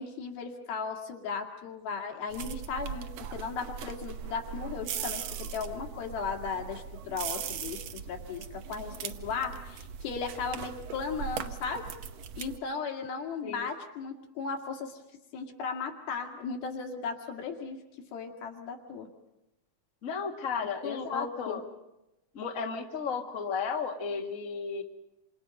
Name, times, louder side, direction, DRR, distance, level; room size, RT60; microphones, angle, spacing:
voice 1, 0.0-11.9 12.4-15.0 15.3-19.1 20.8-21.6, left 5 dB, 85° left, 2 dB, 4.2 m, -36 dB
sound 1, 2.3-12.6, right 8 dB, 80° right, 1.4 m, -39 dB
voice 2, 20.0-21.6 22.3-24.8, left 5 dB, 30° left, 2 dB, 1.8 m, -34 dB
27.5 x 27.0 x 5.3 m, 0.94 s
omnidirectional pair, 4.2 m